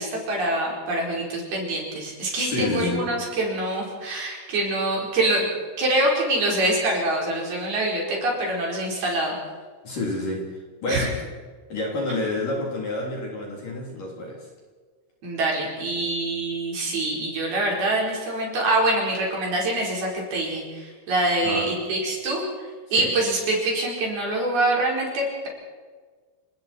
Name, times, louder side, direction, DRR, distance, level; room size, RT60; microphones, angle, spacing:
voice 1, 0.0-5.4 5.8-9.4 10.9-11.1 15.2-25.5, right 1 dB, 50° right, -2 dB, 6.3 m, -25 dB
voice 2, 2.4-3.1 9.8-10.4 10.8-11.1 11.7-14.4 21.4-21.7 23.0-23.1, left 2 dB, 45° left, -2 dB, 4.6 m, -28 dB
30.0 x 19.5 x 4.5 m, 1.5 s
omnidirectional pair, 5.9 m